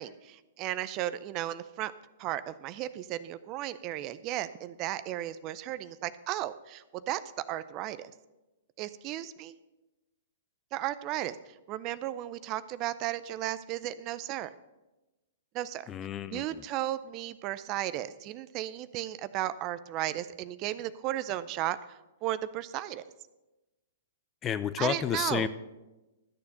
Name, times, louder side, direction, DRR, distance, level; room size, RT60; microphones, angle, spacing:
voice 1, 0.0-1.9 2.2-7.2 7.5-8.1 8.8-9.6 10.7-11.4 11.7-14.5 15.5-15.8 16.3-23.0 24.8-25.5, right 14 dB, 35° right, 15 dB, 0.5 m, -35 dB
voice 2, 15.9-16.6 24.4-25.5, left 8 dB, 25° left, 14 dB, 0.6 m, -31 dB
13.0 x 6.8 x 6.7 m, 1.0 s
hypercardioid pair, 120°, 0 cm